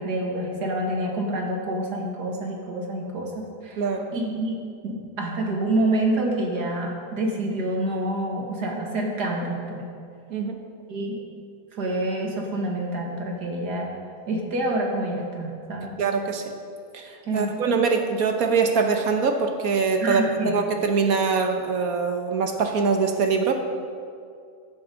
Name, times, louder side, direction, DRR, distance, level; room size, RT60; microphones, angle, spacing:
voice 1, 0.0-3.8 4.1-4.6 4.8-9.8 10.9-11.2 11.8-13.9 14.3-15.9 17.3-17.5 20.0-20.5, right 1 dB, 90° right, -1 dB, 2.3 m, -27 dB
voice 2, 3.8-4.1 10.3-10.6 16.0-16.4 16.9-23.6, right 5 dB, 65° right, 4 dB, 1.5 m, -23 dB
15.0 x 10.5 x 3.9 m, 2.3 s
omnidirectional pair, 1.7 m